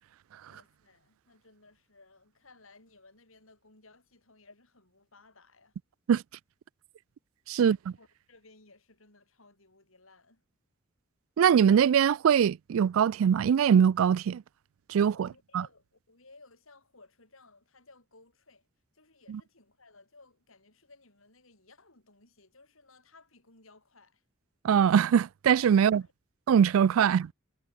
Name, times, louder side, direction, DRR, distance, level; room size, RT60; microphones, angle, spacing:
voice 1, 0.5-5.8 7.5-10.4 15.1-18.7 18.9-24.2 25.7-26.1 27.0-27.2, left 3 dB, 80° left, 6.5 m, -59 dB
voice 2, 7.5-7.9 11.4-14.4 14.9-15.2 24.6-26.0 26.5-27.2, right 8 dB, 80° right, 0.3 m, -22 dB
head